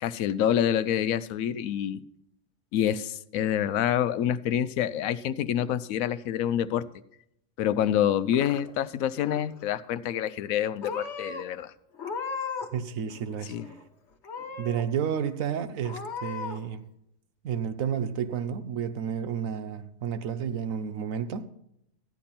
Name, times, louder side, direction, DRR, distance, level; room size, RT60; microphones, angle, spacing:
voice 1, 0.0-2.0 2.7-6.9 7.6-11.7 13.5-13.6, left 10 dB, 80° left, 1.0 m, -27 dB
Purr / Meow, 8.0-8.9 9.2-9.7 10.4-10.6 10.8-11.4 11.9-12.8 13.1-13.8 14.2-14.8 15.3-15.4 15.8-16.6, left 5 dB, 55° left, 1.3 m, -37 dB
voice 2, 12.7-13.5 14.6-16.8 17.4-21.5, right 8 dB, 80° right, 1.2 m, -31 dB
13.5 x 10.0 x 4.2 m
omnidirectional pair, 1.4 m